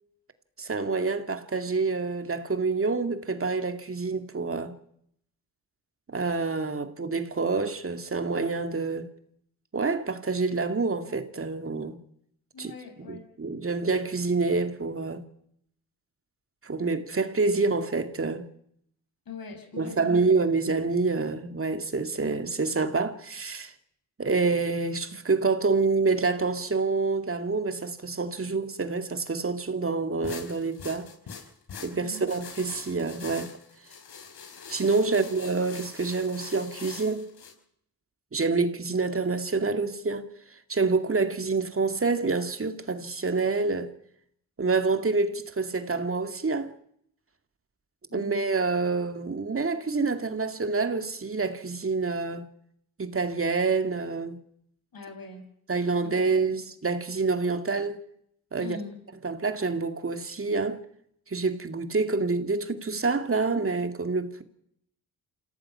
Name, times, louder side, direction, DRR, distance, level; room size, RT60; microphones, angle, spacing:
voice 1, 0.6-4.7 6.1-9.1 9.7-12.0 12.6-12.7 13.0-15.2 16.6-18.5 19.7-23.7 24.2-31.1 31.8-33.5 34.7-37.3 38.3-43.9 44.6-46.7 48.1-52.5 53.0-54.4 55.7-58.0 58.5-58.8 59.2-60.8 61.3-64.4, right 4 dB, 35° right, 2.3 m, -27 dB
voice 2, 12.5-13.2 19.3-20.2 32.0-32.3 35.1-35.2 48.1-48.4 54.9-55.5 56.0-56.1 58.6-59.0, left 3 dB, 65° left, 7.1 m, -41 dB
sound 1, 30.2-37.5, left 6 dB, 80° left, 6.0 m, -43 dB
27.5 x 17.0 x 5.8 m
cardioid pair, 65°, 38 cm